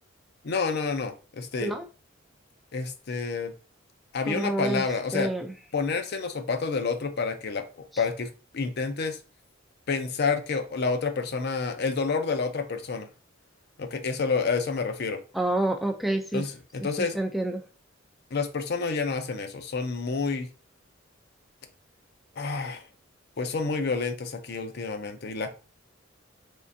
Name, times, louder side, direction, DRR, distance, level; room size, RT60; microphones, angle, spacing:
voice 1, 0.4-1.7 2.7-3.5 4.1-5.3 5.7-8.3 8.5-9.2 9.9-13.1 13.8-15.2 16.3-17.2 18.3-20.5 22.4-22.8 23.4-25.5, left 4 dB, 55° left, 7 dB, 0.5 m, -29 dB
voice 2, 4.3-4.8 5.1-5.5 15.3-16.5 17.1-17.6, right 1 dB, ahead, 4 dB, 0.4 m, -28 dB
3.7 x 3.4 x 2.6 m, 0.34 s
head